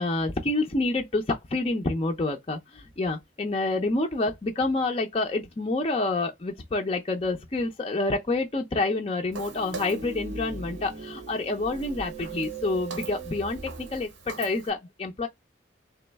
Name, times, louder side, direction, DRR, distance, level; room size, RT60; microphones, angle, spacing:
voice 1, 0.0-15.3, left 2 dB, 30° left, 0.5 m, -28 dB
Walk footsteps, 9.3-14.7, right 4 dB, 90° right, 0.9 m, -44 dB
sound 1, 9.4-14.1, right 4 dB, 35° right, 0.5 m, -39 dB
3.4 x 3.0 x 3.4 m
head